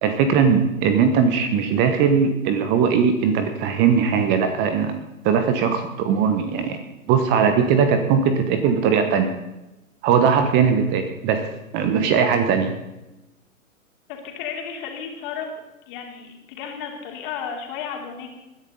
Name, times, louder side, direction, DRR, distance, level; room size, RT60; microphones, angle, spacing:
voice 1, 0.0-5.0 5.2-6.8 7.1-9.3 10.0-11.5 11.7-12.8, right 6 dB, 25° right, 8 dB, 1.1 m, -19 dB
voice 2, 14.1-15.5 15.9-18.3, left 7 dB, 35° left, 1 dB, 3.4 m, -33 dB
20.5 x 11.0 x 4.1 m, 0.99 s
figure-of-eight pair, 120°, 42 cm